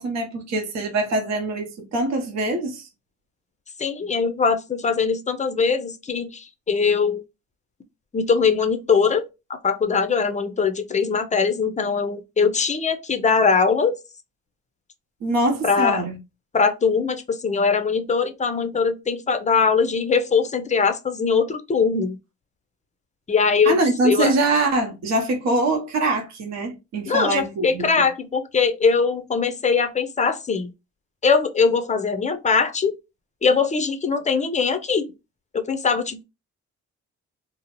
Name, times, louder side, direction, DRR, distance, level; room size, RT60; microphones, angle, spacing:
voice 1, 0.0-2.9 15.2-16.2 23.7-28.1, right 2 dB, 60° right, 0.8 m, -23 dB
voice 2, 3.8-7.2 8.1-9.2 9.5-14.0 15.6-16.0 16.5-22.2 23.3-23.8 24.0-24.3 27.1-30.7 31.2-32.9 33.4-35.1 35.5-36.2, left 5 dB, 25° left, 0.5 m, -21 dB
2.8 x 2.0 x 2.9 m
cardioid pair, 90°, 30 cm